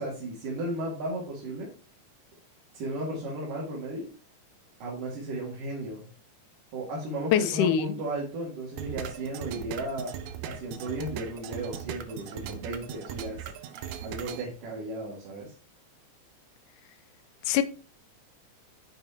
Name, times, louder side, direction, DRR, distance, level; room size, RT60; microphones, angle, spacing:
voice 1, 0.0-1.7 2.7-4.1 4.8-6.1 6.7-10.1 10.4-13.5 14.0-15.5, right 1 dB, 85° right, 3.8 m, -35 dB
voice 2, 7.3-8.0 17.5-17.6, left 9 dB, 85° left, 2.1 m, -23 dB
sound 1, 8.8-14.4, right 9 dB, 70° right, 2.1 m, -39 dB
9.3 x 7.9 x 2.9 m
omnidirectional pair, 3.6 m